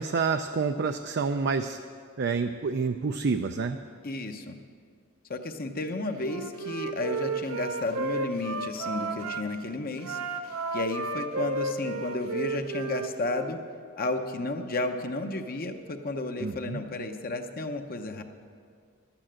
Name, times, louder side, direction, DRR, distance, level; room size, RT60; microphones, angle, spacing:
voice 1, 0.0-1.8 2.2-3.8 16.4-16.8, right 5 dB, 55° right, 7 dB, 0.4 m, -28 dB
voice 2, 4.0-4.5 5.3-10.2 10.7-13.6 14.0-18.2, left 2 dB, 45° left, 5 dB, 0.8 m, -32 dB
Wind instrument woodwind instrument, 6.1-9.4 10.0-13.6, right 3 dB, 80° right, 0.8 m, -33 dB
12.0 x 8.9 x 7.5 m, 2.1 s
head